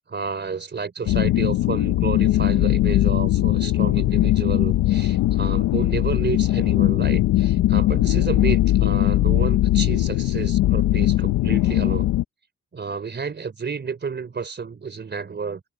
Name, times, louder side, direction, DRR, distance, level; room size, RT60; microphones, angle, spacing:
voice 1, 0.1-12.1 12.7-15.6, right 5 dB, 35° right, 3.6 m, -31 dB
sound 1, 1.1-12.2, left 15 dB, 80° left, 0.8 m, -20 dB
open air
cardioid pair, 90°, 30 cm